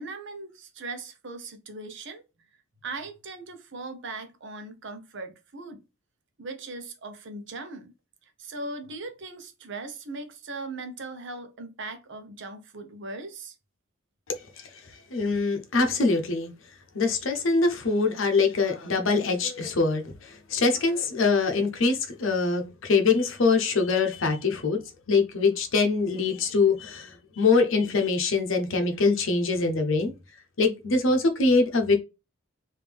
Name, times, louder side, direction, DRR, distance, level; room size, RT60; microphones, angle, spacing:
voice 1, 0.0-2.2 2.8-5.8 6.4-7.9 8.2-13.6, right 3 dB, 60° right, 0.8 m, -39 dB
voice 2, 15.1-16.5 16.9-24.8 25.1-30.1 30.6-32.0, left 4 dB, 65° left, 0.8 m, -23 dB
3.5 x 2.7 x 3.3 m
head